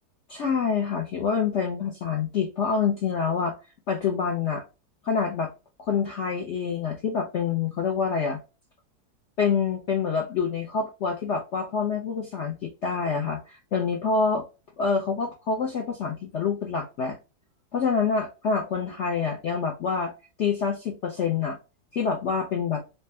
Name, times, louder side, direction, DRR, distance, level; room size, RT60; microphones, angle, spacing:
voice 1, 0.3-3.6 3.9-4.6 5.0-5.5 5.8-8.4 9.4-14.4 14.8-17.2 17.7-20.1 20.4-21.6 21.9-22.8, left 5 dB, 65° left, 2 dB, 0.6 m, -26 dB
4.2 x 2.1 x 3.2 m, 0.29 s
omnidirectional pair, 1.9 m